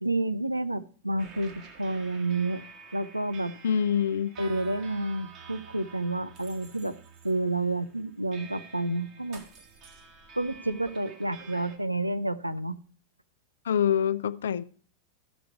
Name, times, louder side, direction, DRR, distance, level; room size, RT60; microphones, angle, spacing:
voice 1, 0.0-2.6 2.9-3.5 4.4-7.0 7.2-9.4 10.4-12.8, right 2 dB, 85° right, 0.5 m, -30 dB
sound 1, 1.2-11.8, right 5 dB, 35° right, 1.8 m, -49 dB
voice 2, 3.6-4.3 13.6-14.6, left 8 dB, 65° left, 0.4 m, -25 dB
13.5 x 6.1 x 4.5 m
figure-of-eight pair, 90°, 0 cm